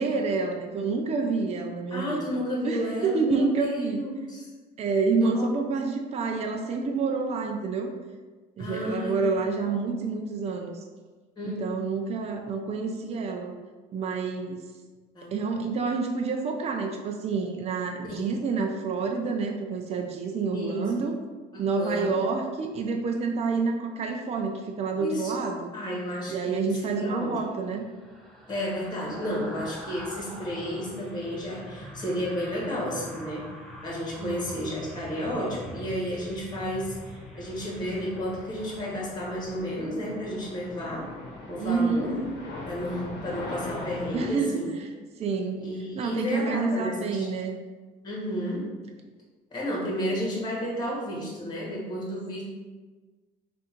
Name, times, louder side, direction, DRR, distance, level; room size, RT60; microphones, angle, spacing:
voice 1, 0.0-2.4 2.6-4.0 4.8-7.9 8.6-10.8 11.4-13.6 13.9-14.6 15.3-21.1 21.6-25.7 26.3-27.8 34.2-34.5 41.6-42.1 44.1-44.9 45.2-45.6 46.0-47.6, right 4 dB, 40° right, 2 dB, 0.5 m, -28 dB
voice 2, 1.9-4.5 5.2-5.5 8.6-9.3 11.4-11.8 15.1-15.3 18.1-18.2 20.5-20.8 21.5-22.1 25.0-25.3 25.7-27.3 28.5-33.5 33.8-41.1 41.5-42.2 42.6-44.7 45.6-47.3 48.0-48.6 49.5-52.4, equal, 25° left, -4 dB, 1.4 m, -32 dB
sound 1, 26.8-40.1 40.5-40.7, equal, ahead, 0.7 m, -44 dB
sound 2, 36.5-44.3, left 2 dB, 80° left, 0.9 m, -41 dB
3.5 x 2.6 x 4.4 m, 1.3 s
cardioid pair, 110°, 17 cm